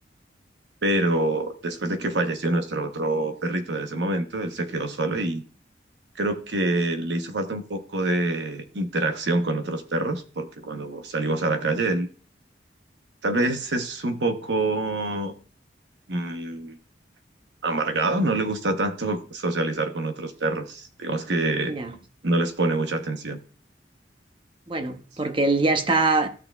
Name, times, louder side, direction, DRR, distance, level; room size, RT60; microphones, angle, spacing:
voice 1, 0.8-5.4 6.2-12.1 13.2-15.3 16.1-16.8 17.6-21.7 22.2-23.4, right 2 dB, 80° right, 0.9 m, -26 dB
voice 2, 24.7-26.3, right 3 dB, 30° right, 0.8 m, -23 dB
14.5 x 6.5 x 2.3 m
head